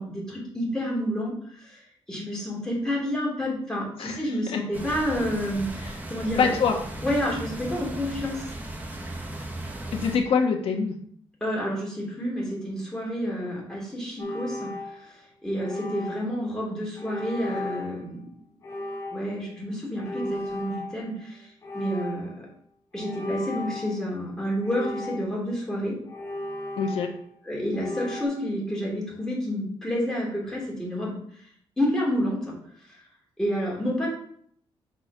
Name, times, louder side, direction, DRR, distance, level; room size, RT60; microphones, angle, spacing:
voice 1, 0.0-1.8 2.1-6.5 7.0-8.5 11.4-18.2 19.1-21.5 21.7-22.3 22.9-26.0 27.5-31.2 31.8-32.5 33.4-34.1, equal, 5° left, -5 dB, 2.8 m, -29 dB
sound 1, 4.7-10.2, right 1 dB, 15° right, 1.0 m, -36 dB
voice 2, 6.4-6.7 9.9-11.0 26.8-27.1, left 5 dB, 60° left, 2 dB, 1.3 m, -24 dB
sound 2, 14.2-15.2 15.6-16.4 17.0-18.0 18.6-19.5 20.0-21.3 21.6-22.4 23.0-24.1 24.6-25.5 26.1-27.3 27.7-28.3, left 1 dB, 30° left, 1.3 m, -36 dB
5.9 x 4.5 x 5.4 m, 0.63 s
cardioid pair, 155°, 11 cm